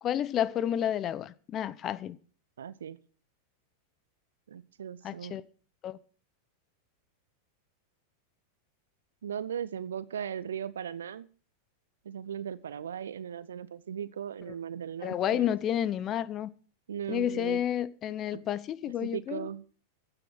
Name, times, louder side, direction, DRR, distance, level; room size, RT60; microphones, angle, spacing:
voice 1, 0.0-2.2 5.0-5.4 5.8-6.0 15.0-16.5 17.1-19.5, left 10 dB, 30° left, 0.8 m, -30 dB
voice 2, 2.6-3.0 4.5-5.4 9.2-11.3 12.0-15.5 16.9-17.6 18.3-18.4 19.0-19.7, right 8 dB, 65° right, 0.9 m, -38 dB
15.0 x 8.8 x 6.2 m
figure-of-eight pair, 90°, 0 cm